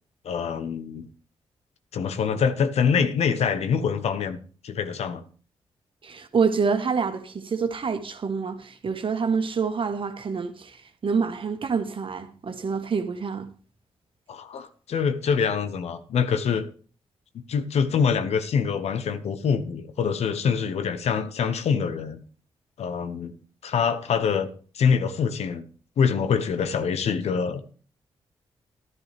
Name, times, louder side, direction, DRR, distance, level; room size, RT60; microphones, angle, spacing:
voice 1, 0.2-1.1 1.9-4.4 4.6-5.2 14.3-16.7 17.5-22.2 22.8-23.3 23.6-24.5 24.7-25.7 26.0-27.6, left 6 dB, 75° left, 1.0 m, -25 dB
voice 2, 6.0-13.5, right 5 dB, 55° right, 1.5 m, -27 dB
12.5 x 10.5 x 3.4 m
cardioid pair, 55°, 11 cm